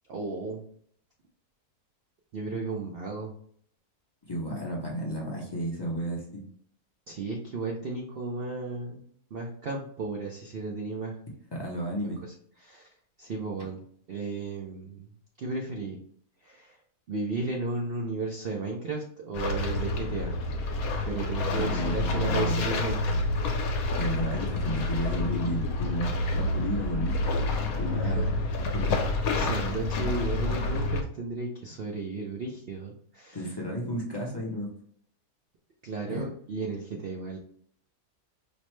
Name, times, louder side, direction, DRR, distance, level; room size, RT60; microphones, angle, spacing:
voice 1, 0.1-0.6 2.3-3.3 7.1-9.0 9.3-11.2 12.2-12.9 13.2-13.8 14.1-15.1 15.4-16.0 16.4-16.8 17.1-20.4 21.0-23.2 28.0-28.3 29.4-33.5 35.8-37.4, right 3 dB, 85° right, 0 dB, 0.5 m, -34 dB
voice 2, 4.3-6.4 11.5-12.2 21.5-22.7 24.0-27.2 27.8-28.3 28.7-29.0 33.3-34.7 36.1-36.2, equal, 40° left, -3 dB, 0.3 m, -32 dB
sound 1, 19.3-31.0, left 2 dB, 70° left, 1.1 m, -28 dB
5.1 x 2.1 x 3.0 m, 0.62 s
omnidirectional pair, 1.6 m